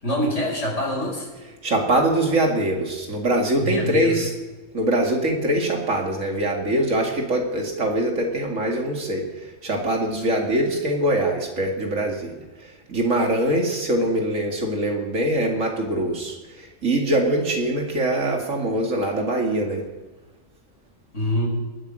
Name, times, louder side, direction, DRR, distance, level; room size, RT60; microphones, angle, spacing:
voice 1, 0.0-1.3 3.6-4.2 21.1-21.5, equal, 65° left, -2 dB, 5.4 m, -25 dB
voice 2, 1.6-4.3 4.7-9.3 9.6-12.3 12.9-19.8, right 1 dB, 75° right, 1 dB, 2.7 m, -23 dB
19.0 x 9.0 x 6.4 m, 1.2 s
omnidirectional pair, 1.3 m